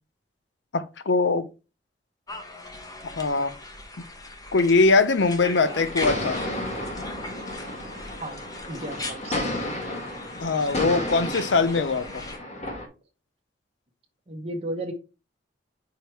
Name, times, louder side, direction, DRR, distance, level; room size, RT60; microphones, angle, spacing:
voice 1, 0.7-1.5 3.2-3.5 4.5-6.4 10.4-12.0, left 3 dB, 85° left, 0.7 m, -21 dB
sound 1, 2.3-12.4, left 2 dB, 20° left, 1.0 m, -40 dB
sound 2, 5.6-12.9, left 1 dB, 40° left, 1.5 m, -32 dB
voice 2, 8.7-9.4 11.8-11.9 14.3-14.9, right 1 dB, 35° right, 1.0 m, -34 dB
5.0 x 4.7 x 4.4 m
head